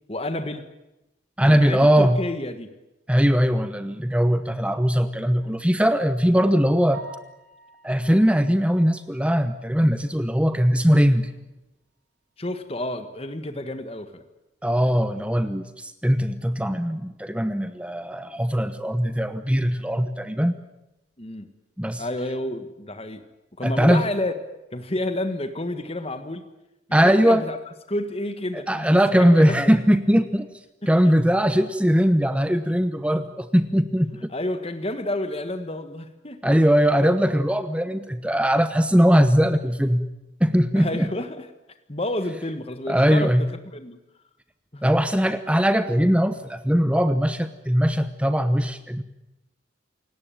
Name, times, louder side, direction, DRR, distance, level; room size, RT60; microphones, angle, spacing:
voice 1, 0.1-0.7 1.4-2.7 12.4-14.2 21.2-21.5 22.0-23.2 23.6-24.3 24.7-26.4 27.0-27.6 27.9-28.9 29.2-29.7 31.0-31.1 34.3-36.6 38.2-38.3 40.7-41.4 41.9-43.3 43.7-44.0 44.7-44.8, left 1 dB, 30° left, 8 dB, 1.5 m, -30 dB
voice 2, 1.4-2.2 3.1-7.0 7.8-11.3 14.6-20.6 21.8-22.0 23.6-24.0 26.9-27.4 28.5-30.5 30.9-34.3 36.4-40.1 40.4-41.1 42.9-43.4 44.8-49.0, equal, 5° right, 10 dB, 0.9 m, -20 dB
Piano, 6.9-10.9 11.2-11.4 11.9-12.0 12.3-12.4 15.5-15.6 24.1-24.3, right 3 dB, 65° right, 5.4 m, -49 dB
28.5 x 17.5 x 9.1 m, 0.94 s
head